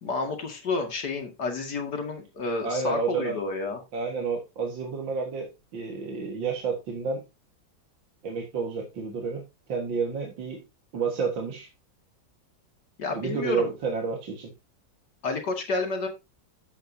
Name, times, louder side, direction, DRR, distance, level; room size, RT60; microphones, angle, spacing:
voice 1, 0.0-3.8 13.0-13.7 15.2-16.1, left 3 dB, 55° left, 3 dB, 2.7 m, -30 dB
voice 2, 2.6-3.4 3.9-7.2 8.2-9.4 9.7-10.6 10.9-11.7 13.1-14.5, right 5 dB, 75° right, 0 dB, 2.4 m, -30 dB
12.0 x 8.2 x 2.8 m, 0.25 s
omnidirectional pair, 2.1 m